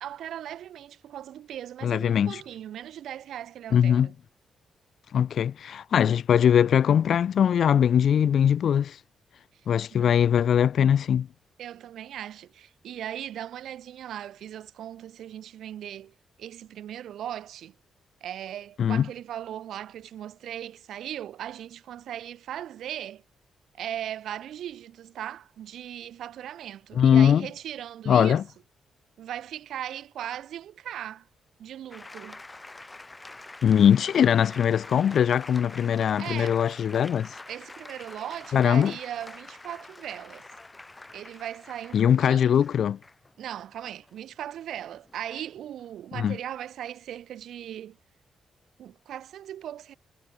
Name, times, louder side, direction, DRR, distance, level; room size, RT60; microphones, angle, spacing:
voice 1, 0.0-4.1 10.0-10.2 11.6-17.7 18.2-23.2 23.7-28.4 29.2-31.3 31.6-32.4 36.2-36.6 37.5-40.5 41.1-42.5 43.4-48.0 48.8-49.9, right 11 dB, 85° right, 0.6 m, -38 dB
voice 2, 1.8-2.4 3.7-4.1 5.1-9.0 9.7-11.3 18.8-19.1 27.0-27.5 28.1-28.4 33.6-37.4 38.5-38.9 41.9-43.0 46.1-46.4, left 8 dB, 65° left, 0.3 m, -21 dB
sound 1, 31.9-46.4, left 2 dB, 20° left, 2.0 m, -46 dB
cardioid pair, 110°, 0 cm